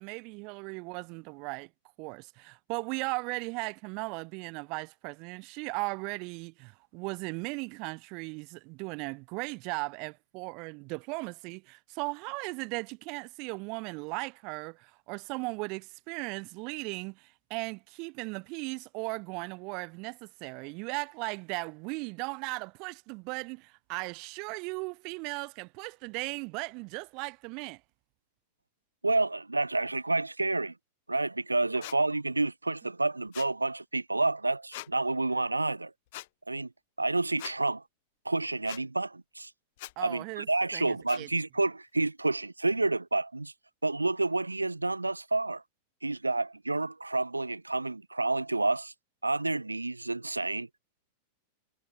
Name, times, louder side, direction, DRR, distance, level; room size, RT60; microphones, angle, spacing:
voice 1, 0.0-1.7 2.0-27.8 40.0-40.5 40.7-41.3, right 30 dB, 45° right, 1.1 m, -37 dB
voice 2, 29.0-30.7 31.1-35.9 36.5-36.7 37.0-37.8 38.3-39.5 40.0-43.5 43.8-45.6 46.0-48.9 49.2-50.7, right 2 dB, 80° right, 0.5 m, -29 dB
sound 1, 31.8-32.0 33.3-33.5 34.7-34.9 36.1-36.3 37.4-37.6 38.7-38.8 39.8-39.9 41.1-41.2, left 19 dB, 50° left, 1.1 m, -42 dB
figure-of-eight pair, 90°, 0 cm